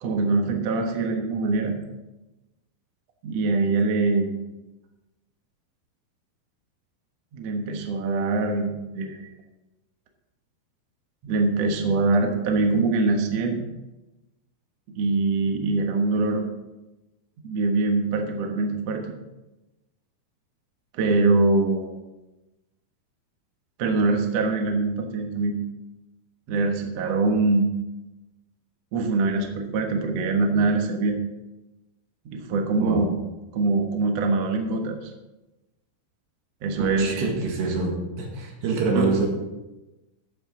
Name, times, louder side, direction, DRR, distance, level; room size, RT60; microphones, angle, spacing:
voice 1, 0.0-1.7 3.2-4.3 7.3-9.3 11.2-13.6 15.0-16.5 17.4-19.1 20.9-21.9 23.8-25.6 26.5-27.7 28.9-31.2 32.3-33.2 33.5-35.1 36.6-37.3 39.0-39.1, right 3 dB, 60° right, 3 dB, 1.7 m, -23 dB
voice 2, 36.8-39.3, right 3 dB, 80° right, 0 dB, 4.1 m, -26 dB
13.5 x 8.8 x 3.8 m, 1.0 s
omnidirectional pair, 4.7 m